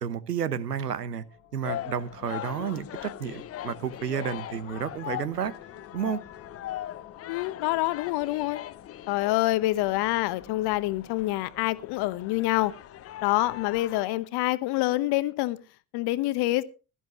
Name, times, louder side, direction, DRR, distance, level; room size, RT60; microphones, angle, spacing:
voice 1, 0.0-1.2 1.5-5.5 5.9-6.2, right 8 dB, 85° right, 0.9 m, -31 dB
sound 1, 1.1-14.2, left 10 dB, 75° left, 1.9 m, -53 dB
sound 2, 1.6-14.0, left 12 dB, 30° left, 0.6 m, -40 dB
voice 2, 7.3-8.6 9.1-12.7 13.2-15.6 15.9-16.6, left 17 dB, 55° left, 1.1 m, -26 dB
16.5 x 12.5 x 3.1 m
figure-of-eight pair, 55°, 47 cm